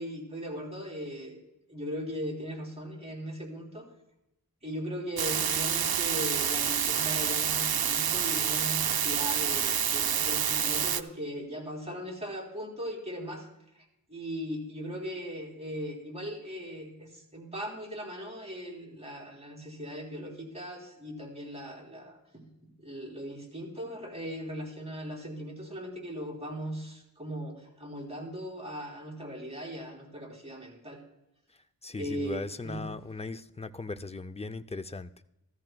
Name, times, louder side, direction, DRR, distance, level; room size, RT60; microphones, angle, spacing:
voice 1, 0.0-1.4 1.7-3.9 4.6-13.5 13.8-22.5 22.8-31.0 31.9-32.8, equal, 15° right, 0 dB, 3.3 m, -38 dB
sound 1, 5.2-11.0, right 8 dB, 75° right, 0.5 m, -28 dB
voice 2, 31.8-35.1, left 3 dB, 15° left, 11 dB, 0.4 m, -38 dB
14.5 x 13.5 x 2.3 m, 0.88 s
wide cardioid pair, 50°, 37 cm